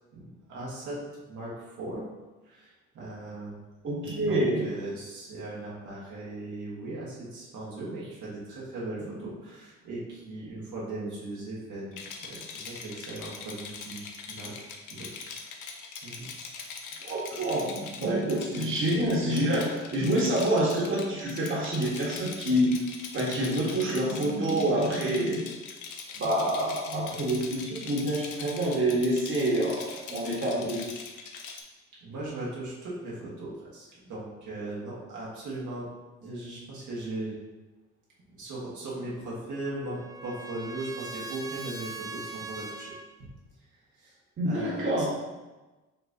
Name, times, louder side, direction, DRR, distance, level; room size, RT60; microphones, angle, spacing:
voice 1, 0.1-1.0 1.3-2.0 2.4-3.6 4.2-14.0 14.3-14.5 14.9-15.1 16.0-16.3 32.0-35.9 36.2-37.3 38.3-42.9 43.9-44.2 44.4-45.1, right 2 dB, 75° right, -6 dB, 1.5 m, -38 dB
voice 2, 3.8-4.7 17.0-22.7 23.1-25.4 26.1-30.8 44.4-45.1, right 1 dB, 40° right, -5 dB, 1.4 m, -27 dB
Rattle, 11.9-31.6, left 5 dB, 80° left, 0.7 m, -42 dB
Trumpet, 39.2-43.0, right 3 dB, 15° right, 0.3 m, -41 dB
5.7 x 3.3 x 2.7 m, 1.2 s
cardioid pair, 90°, 30 cm